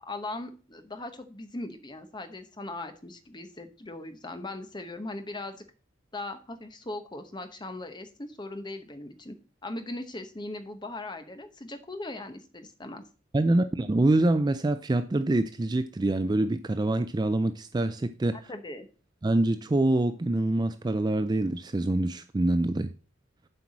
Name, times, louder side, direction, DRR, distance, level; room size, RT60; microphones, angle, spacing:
voice 1, 0.1-5.6 6.1-9.3 9.6-13.0 18.3-18.9, left 2 dB, 20° left, 0.9 m, -39 dB
voice 2, 13.3-18.4 19.2-22.9, right 2 dB, 20° right, 0.4 m, -25 dB
7.8 x 4.7 x 7.3 m
head